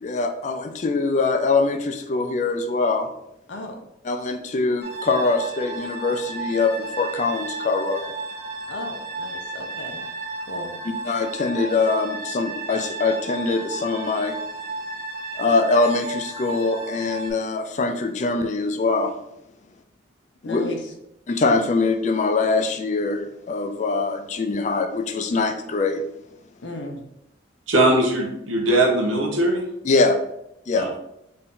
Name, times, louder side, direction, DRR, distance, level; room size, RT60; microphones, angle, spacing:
voice 1, 0.0-3.1 4.0-8.0 10.8-14.4 15.4-19.1 20.4-20.7 21.3-26.0 29.8-30.2 30.7-30.9, left 3 dB, 40° left, 6 dB, 0.3 m, -23 dB
sound 1, 4.8-17.3, right 2 dB, 55° right, 1.4 m, -33 dB
voice 2, 8.7-10.1 10.5-10.8 20.4-20.8 26.6-27.0, left 2 dB, 70° left, 3 dB, 0.7 m, -35 dB
voice 3, 27.7-29.7 30.7-30.9, right 1 dB, 90° right, 1 dB, 1.0 m, -20 dB
4.1 x 2.7 x 3.7 m, 0.81 s
head